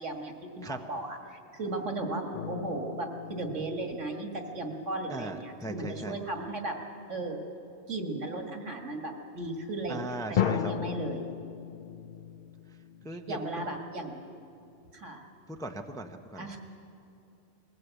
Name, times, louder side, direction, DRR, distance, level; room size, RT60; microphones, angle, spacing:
voice 1, 0.0-6.8 7.1-7.4 7.9-10.1 10.5-11.3 13.1-14.2 14.9-15.2 16.3-16.6, right 2 dB, 75° right, 3 dB, 2.3 m, -36 dB
sound 1, 2.3-5.4 10.4-14.0, left 9 dB, 50° left, 0.6 m, -36 dB
voice 2, 5.1-6.2 9.9-10.9 13.0-13.6 15.5-16.5, right 1 dB, 5° left, 5 dB, 0.7 m, -39 dB
21.5 x 16.5 x 8.2 m, 2.7 s
omnidirectional pair, 1.3 m